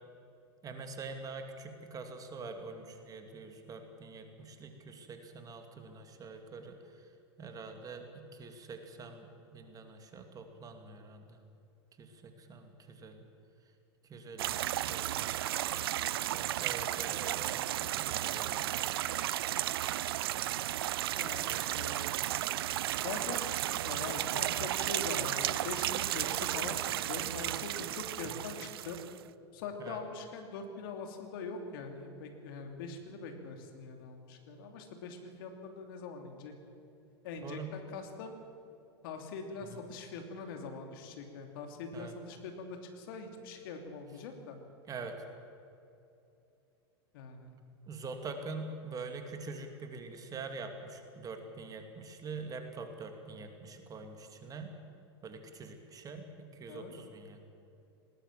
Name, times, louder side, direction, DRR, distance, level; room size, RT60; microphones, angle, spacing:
voice 1, 0.6-7.1 7.4-11.4 12.0-13.3 14.1-15.3 16.3-19.0 29.8-30.0 37.4-37.7 39.7-39.8 41.9-42.1 44.9-45.2 47.9-54.7 55.2-57.5, right 4 dB, 25° right, 5 dB, 2.6 m, -45 dB
sound 1, 14.4-29.2, right 14 dB, 65° right, 0.5 m, -34 dB
voice 2, 21.1-22.2 23.0-23.5 23.7-29.0 29.5-36.5 37.2-38.3 39.0-44.6 47.1-47.5 56.7-56.9, left 4 dB, 55° left, 4 dB, 3.0 m, -43 dB
20.0 x 19.0 x 7.7 m, 2.8 s
figure-of-eight pair, 90°, 14 cm